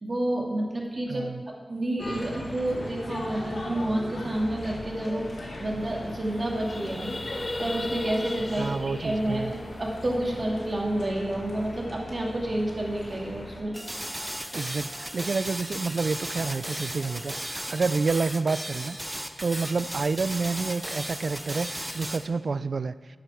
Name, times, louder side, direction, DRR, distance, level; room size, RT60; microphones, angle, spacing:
voice 1, 0.0-5.3 5.6-7.1 7.6-13.8, right 1 dB, 45° right, -1 dB, 2.1 m, -29 dB
voice 2, 1.1-1.4 8.6-9.5 14.5-19.0 19.4-22.9, right 4 dB, 65° right, 15 dB, 0.3 m, -29 dB
sound 1, 2.0-13.6, left 1 dB, 70° left, 2.0 m, -39 dB
sound 2, 5.3-5.4 5.6-5.8 6.2-10.5, left 2 dB, 35° left, 0.7 m, -36 dB
sound 3, 13.7-22.3, right 1 dB, 10° right, 0.6 m, -35 dB
11.5 x 8.9 x 3.5 m, 1.5 s
cardioid pair, 65°, 0 cm